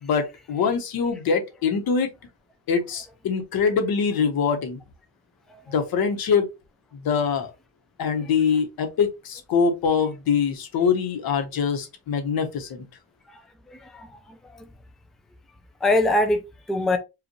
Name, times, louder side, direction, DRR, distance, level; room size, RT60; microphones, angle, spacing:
voice 1, 0.0-2.1 2.7-4.8 5.7-6.5 6.9-7.5 8.0-12.9, left 6 dB, 75° left, 1.2 m, -24 dB
voice 2, 13.7-14.7 15.8-17.0, left 2 dB, ahead, 0.4 m, -24 dB
4.9 x 2.5 x 3.1 m
cardioid pair, 165°, 37 cm